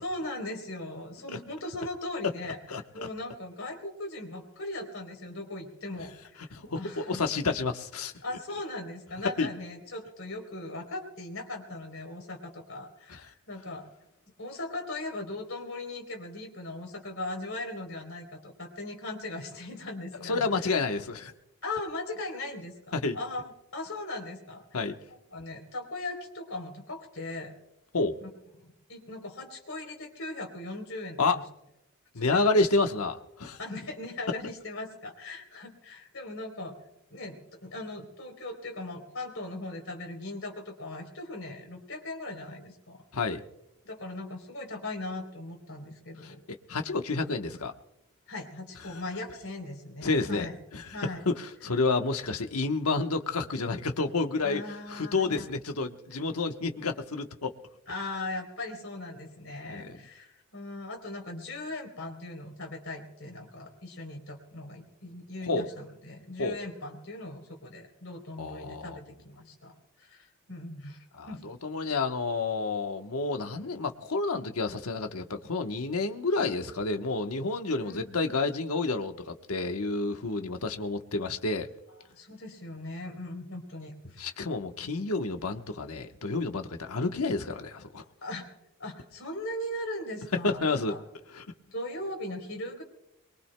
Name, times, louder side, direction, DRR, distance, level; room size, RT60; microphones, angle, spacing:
voice 1, 0.0-2.6 2.9-6.4 6.7-7.2 8.2-13.8 14.4-20.5 21.6-24.6 25.1-27.5 28.6-31.4 32.2-32.4 33.6-36.8 37.1-43.0 43.8-46.4 48.3-50.6 50.9-51.2 54.4-55.5 57.9-69.7 70.0-71.4 77.8-78.2 82.1-84.3 88.2-88.5 88.8-91.0 91.7-92.8, left 2 dB, 60° left, 2 dB, 3.5 m, -39 dB
voice 2, 2.7-3.1 6.5-8.1 9.4-9.5 20.2-21.3 22.9-23.2 24.7-24.9 27.9-28.1 31.2-31.4 32.1-33.6 43.1-43.4 46.2-46.3 46.7-47.7 48.9-49.0 50.0-50.5 50.7-54.6 54.9-57.5 59.6-60.0 65.4-65.7 66.4-66.6 68.4-69.0 71.2-81.7 84.2-88.0 90.4-90.9 91.3-91.4, left 3 dB, 80° left, 5 dB, 1.1 m, -29 dB
23.0 x 22.5 x 2.2 m, 0.85 s
head